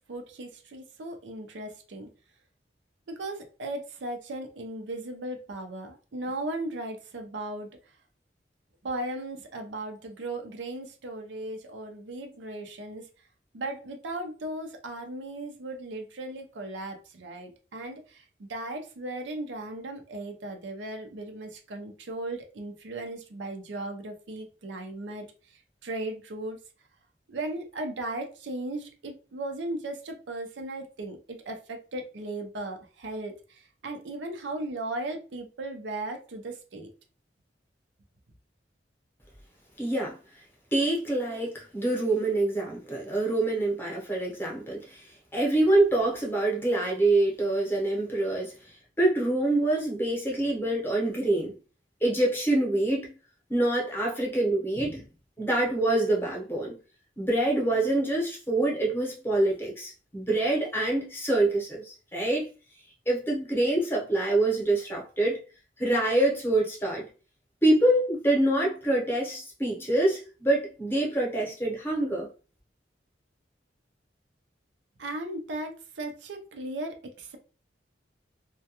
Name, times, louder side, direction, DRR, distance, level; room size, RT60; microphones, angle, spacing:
voice 1, 0.1-2.1 3.1-7.7 8.8-13.0 13.5-25.3 25.8-26.6 27.3-33.3 33.8-36.9 75.0-77.4, right 2 dB, 90° right, 0.5 m, -37 dB
voice 2, 39.8-40.2 40.7-45.0 45.3-48.5 49.0-51.5 52.0-53.1 53.5-55.0 55.4-56.8 57.2-62.5 63.1-65.4 65.8-67.1 67.6-72.3, right 1 dB, 15° left, 0.7 m, -25 dB
2.2 x 2.1 x 2.8 m
head